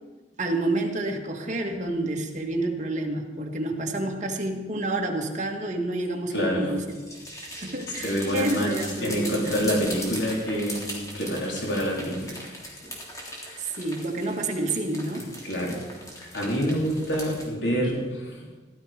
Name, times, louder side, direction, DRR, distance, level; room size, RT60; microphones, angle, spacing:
voice 1, 0.4-6.8 7.4-9.8 13.8-15.3, right 2 dB, 40° right, 2 dB, 2.0 m, -29 dB
voice 2, 6.3-6.7 8.0-12.4 13.4-13.7 15.4-15.8 16.2-18.6, equal, 80° left, -2 dB, 3.7 m, -27 dB
sound 1, 6.8-17.5, equal, 20° left, 3.2 m, -39 dB
17.0 x 12.5 x 5.2 m, 1.3 s
head